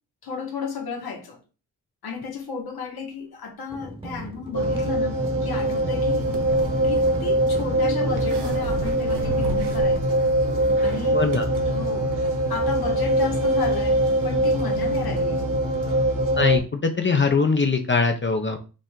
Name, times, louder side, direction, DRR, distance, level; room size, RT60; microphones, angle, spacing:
voice 1, 0.2-1.4 2.0-6.3 6.8-10.2 10.8-11.2 11.7-12.1 12.5-15.5, left 5 dB, 65° left, 1.4 m, -33 dB
sound 1, 3.7-10.6, right 2 dB, 15° right, 1.0 m, -38 dB
sound 2, 4.5-16.6, right 1 dB, 50° right, 1.5 m, -23 dB
sound 3, 5.8-11.0, right 2 dB, 80° right, 1.0 m, -37 dB
voice 2, 11.1-11.5 16.4-18.6, left 4 dB, 30° left, 0.6 m, -22 dB
5.2 x 2.5 x 3.6 m
wide cardioid pair, 100°, 41 cm